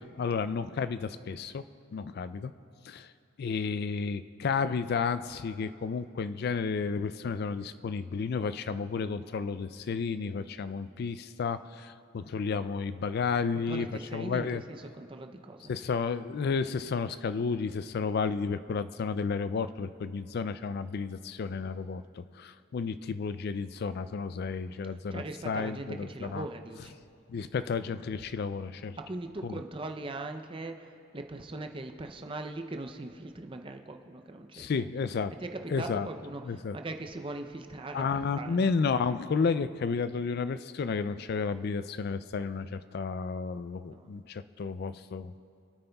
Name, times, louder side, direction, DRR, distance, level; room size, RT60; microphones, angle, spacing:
voice 1, 0.2-1.6 1.9-2.5 2.9-3.1 3.4-13.9 14.1-14.6 15.7-26.4 27.3-29.0 29.4-29.6 34.5-35.3 35.7-36.1 36.4-36.8 37.9-45.3, left 5 dB, 50° left, 13 dB, 0.3 m, -32 dB
voice 2, 13.5-15.7 25.1-27.0 29.0-34.8 35.4-38.6 43.9-44.1, right 2 dB, 25° right, 5 dB, 0.5 m, -40 dB
27.0 x 9.1 x 2.3 m, 2.5 s
head